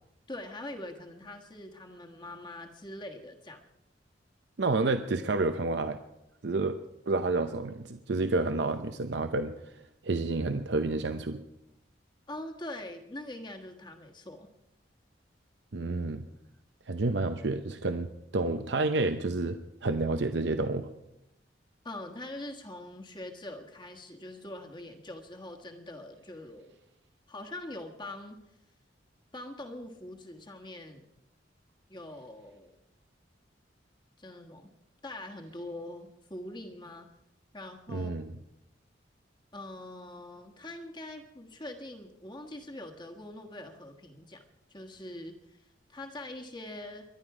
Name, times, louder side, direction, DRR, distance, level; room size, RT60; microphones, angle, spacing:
voice 1, 0.3-3.6 12.3-14.5 21.8-26.7 27.3-28.4 29.3-31.1 31.9-32.8 34.2-34.7 35.0-37.1 37.5-38.1 39.5-44.4 44.7-47.0, left 1 dB, 25° left, 2 dB, 1.4 m, -43 dB
voice 2, 4.6-6.0 6.4-6.8 7.1-9.8 10.0-11.4 15.7-16.3 16.9-20.9 37.9-38.3, right 3 dB, 70° right, 9 dB, 0.7 m, -29 dB
24.0 x 11.0 x 4.9 m, 0.87 s
head